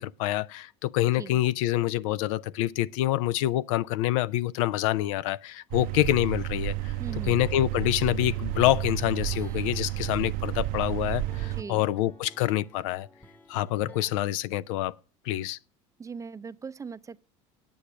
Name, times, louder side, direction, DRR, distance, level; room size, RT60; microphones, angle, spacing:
voice 1, 0.0-6.9 7.3-13.1 13.5-14.9 15.2-15.6, left 15 dB, 80° left, 0.5 m, -26 dB
sound 1, 5.7-11.6, right 16 dB, 60° right, 0.6 m, -31 dB
voice 2, 7.0-7.4 11.5-11.8 16.0-17.2, right 5 dB, 20° right, 0.5 m, -39 dB
sound 2, 7.1-10.8 11.2-14.1, right 2 dB, 10° left, 1.0 m, -50 dB
8.6 x 8.5 x 6.0 m
supercardioid pair, 95°, 16 cm